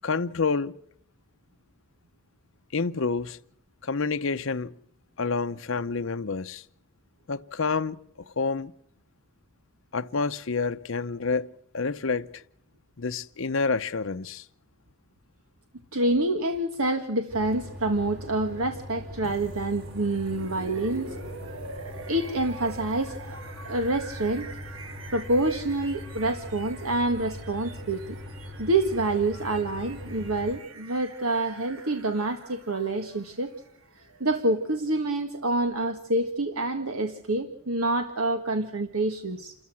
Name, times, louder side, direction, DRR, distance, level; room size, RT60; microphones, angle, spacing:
voice 1, 0.0-0.7 2.7-3.4 3.8-4.7 5.2-6.6 7.3-8.7 9.9-11.5 11.7-12.4 13.0-14.4, left 4 dB, 65° left, 0.7 m, -28 dB
voice 2, 15.9-21.2 22.1-23.4 23.6-24.5 25.1-28.2 28.6-33.5 34.2-39.5, right 2 dB, 85° right, 1.8 m, -27 dB
sound 1, 17.3-30.6, left 1 dB, 50° right, 5.2 m, -41 dB
sound 2, 19.2-35.1, right 3 dB, 70° right, 1.9 m, -45 dB
28.5 x 14.0 x 7.6 m
head